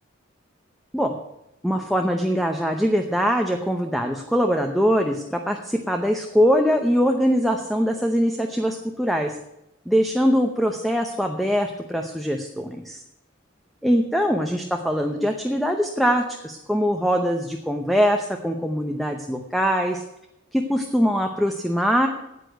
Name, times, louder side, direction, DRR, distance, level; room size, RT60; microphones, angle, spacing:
voice 1, 1.6-9.3 9.9-13.0 13.8-20.0 20.5-22.1, equal, ahead, 4 dB, 0.8 m, -22 dB
9.7 x 8.5 x 7.9 m, 0.86 s
head